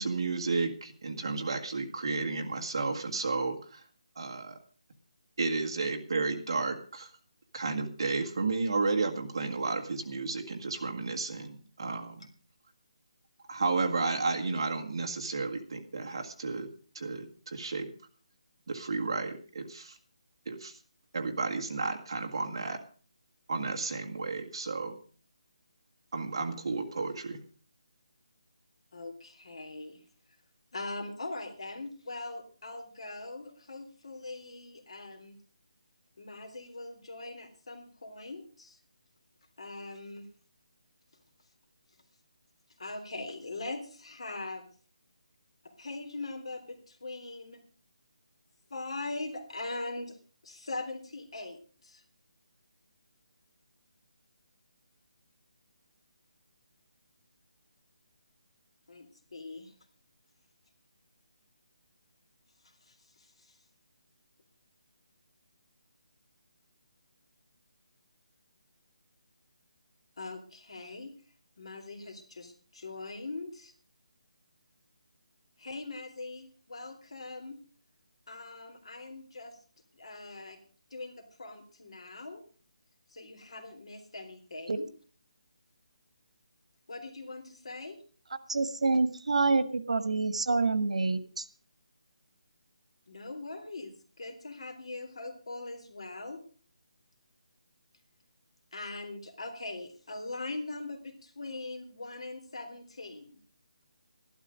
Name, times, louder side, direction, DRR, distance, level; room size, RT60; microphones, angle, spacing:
voice 1, 0.0-3.8 4.2-4.6 5.4-7.1 7.5-12.3 13.5-16.7 16.9-17.9 18.7-20.0 20.5-20.7 21.1-22.8 23.5-25.0 26.1-27.4, right 3 dB, 45° right, 3 dB, 1.8 m, -32 dB
voice 2, 28.9-30.0 30.7-35.4 36.2-38.8 39.6-40.3 42.8-44.7 45.6-47.6 48.7-50.2 50.4-52.0 58.9-59.7 62.6-63.6 70.2-71.1 71.6-73.7 75.6-77.6 78.3-79.6 79.9-80.6 80.9-82.4 83.1-84.9 86.9-88.0 93.1-96.4 98.7-103.4, left 2 dB, 60° left, 6 dB, 3.4 m, -41 dB
voice 3, 88.5-91.5, right 3 dB, 85° right, 12 dB, 1.6 m, -27 dB
13.0 x 12.0 x 5.1 m, 0.42 s
hypercardioid pair, 175°, 3 cm